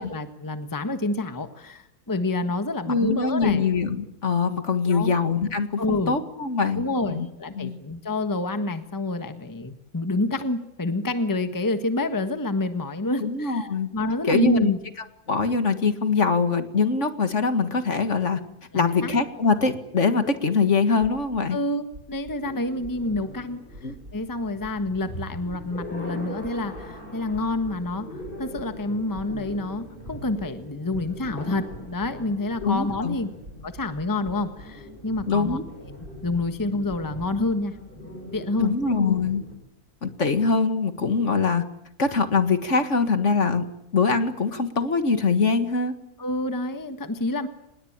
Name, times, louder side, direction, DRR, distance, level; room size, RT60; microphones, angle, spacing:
voice 1, 0.0-3.6 4.9-5.2 5.8-6.2 6.7-14.8 18.7-19.1 21.5-23.6 24.1-33.3 33.6-35.9 36.2-38.7 46.2-47.5, left 2 dB, 15° left, 9 dB, 1.4 m, -28 dB
voice 2, 2.9-7.3 7.6-7.8 13.2-13.9 14.2-14.7 15.3-18.4 18.7-21.6 23.8-23.9 32.6-33.2 35.3-35.6 38.6-39.4 40.0-41.6 42.0-43.7 43.9-46.0, left 4 dB, 50° left, 9 dB, 2.0 m, -23 dB
sound 1, 21.0-21.4 21.9-22.4 22.8-23.3 23.7-24.1 24.6-25.0 25.5-25.9 26.4-26.9 27.3-27.8 28.2-28.7 29.1-29.7 30.0-30.5 30.9-32.1 32.6-33.0 33.4-34.0 34.2-34.7 35.1-35.6 36.0-36.5 36.9-37.3, equal, 55° right, 7.6 m, -44 dB
sound 2, 22.4-39.5, equal, 35° left, 6.7 m, -41 dB
25.5 x 21.0 x 8.7 m, 0.80 s
omnidirectional pair, 1.6 m